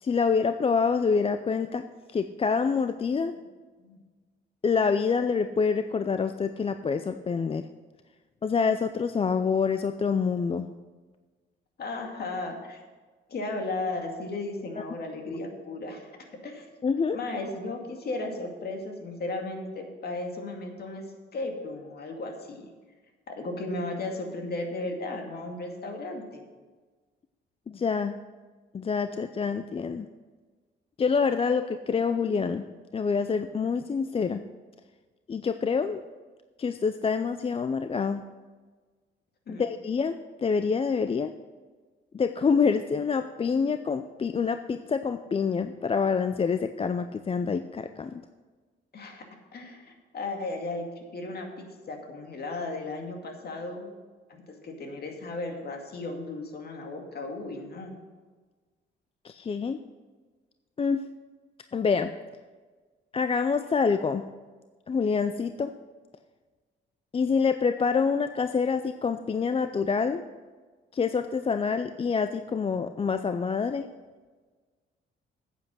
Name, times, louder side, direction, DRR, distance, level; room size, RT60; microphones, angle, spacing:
voice 1, 0.0-1.8 2.1-3.3 4.6-7.6 8.4-10.7 16.8-17.2 27.7-28.2 28.7-30.1 31.0-32.7 32.9-34.4 35.3-36.0 36.6-38.2 39.5-41.3 42.1-48.2 59.2-59.8 60.8-61.0 61.7-62.1 63.1-64.3 64.9-65.7 67.1-70.2 70.9-73.9, left 5 dB, 30° left, 10 dB, 0.4 m, -26 dB
voice 2, 11.8-12.8 13.3-16.1 16.4-16.7 17.1-21.0 21.3-22.7 23.3-26.4 39.5-39.6 48.9-53.9 54.5-57.9, left 2 dB, 50° left, 3 dB, 2.2 m, -35 dB
9.6 x 8.2 x 6.2 m, 1.4 s
cardioid pair, 90°, 20 cm